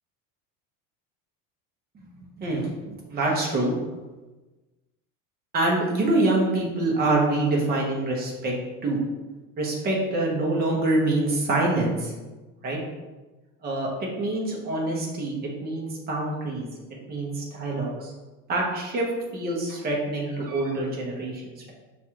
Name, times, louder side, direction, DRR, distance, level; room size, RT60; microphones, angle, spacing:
voice 1, 2.2-3.7 5.5-8.5 8.8-9.0 9.6-12.1 12.6-12.8 13.6-13.9 14.2-15.3 15.6-16.7 17.1-18.1 18.5-19.1 19.3-21.7, right 2 dB, 25° right, -2 dB, 0.8 m, -25 dB
5.9 x 2.4 x 2.8 m, 1.2 s
cardioid pair, 160°, 39 cm